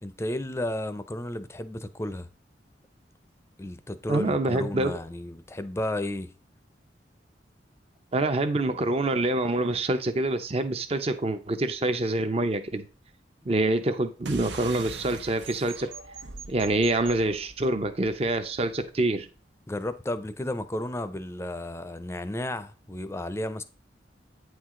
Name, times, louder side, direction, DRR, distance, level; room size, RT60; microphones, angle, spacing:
voice 1, 0.0-2.3 3.6-6.3 19.7-23.6, left 1 dB, 15° left, 0.5 m, -33 dB
voice 2, 4.1-4.9 8.1-12.8 13.5-15.9 16.5-19.3, right 2 dB, 35° right, 0.6 m, -26 dB
sound 1, 14.2-19.2, right 4 dB, 85° right, 0.9 m, -42 dB
8.9 x 4.6 x 3.7 m
head